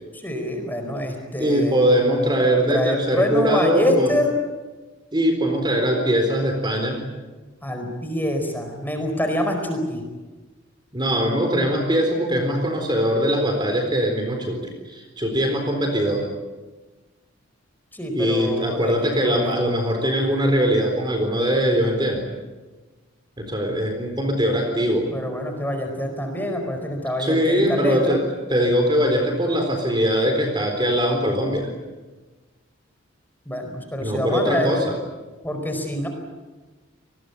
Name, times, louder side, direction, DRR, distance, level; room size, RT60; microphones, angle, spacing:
voice 1, 0.2-1.8 2.7-4.3 7.6-10.0 17.9-19.6 25.1-28.2 33.5-34.7 35.4-36.1, left 1 dB, 10° left, 4 dB, 4.7 m, -26 dB
voice 2, 1.4-4.2 5.1-7.0 10.9-16.3 18.1-22.3 23.4-25.1 27.2-28.2 28.5-31.7 34.0-35.0, equal, 20° right, 4 dB, 4.0 m, -21 dB
27.5 x 21.0 x 8.4 m, 1.2 s
head